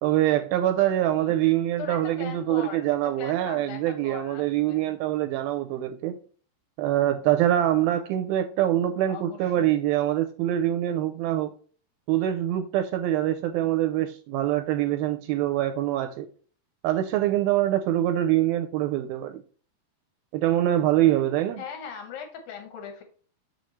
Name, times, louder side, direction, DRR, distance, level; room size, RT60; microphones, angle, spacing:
voice 1, 0.0-6.2 6.8-11.5 12.1-16.3 16.8-19.4 20.3-21.6, right 13 dB, 85° right, 2.2 m, -24 dB
voice 2, 1.8-5.0 9.1-9.7 21.6-23.0, left 7 dB, 70° left, 2.9 m, -40 dB
6.9 x 6.5 x 3.1 m
omnidirectional pair, 4.6 m